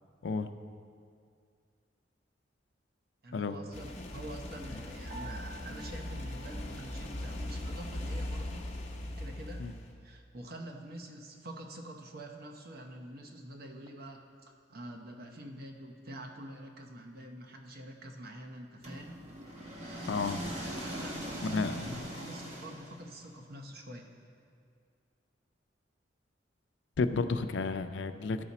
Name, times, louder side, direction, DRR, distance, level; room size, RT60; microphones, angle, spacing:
voice 1, 3.2-8.7 9.2-9.7 10.0-19.2 19.8-20.1 20.8-24.1, right 1 dB, 55° right, 2 dB, 0.8 m, -46 dB
sound 1, 3.7-9.9, left 1 dB, 40° left, 0.8 m, -39 dB
Piano, 5.1-7.6, right 3 dB, 85° right, 1.2 m, -51 dB
sound 2, 18.8-23.2, equal, 40° right, 1.2 m, -41 dB
voice 2, 20.1-20.4 21.4-21.9 27.0-28.4, left 4 dB, 70° left, 9 dB, 0.4 m, -31 dB
14.0 x 4.9 x 4.1 m, 2.2 s
head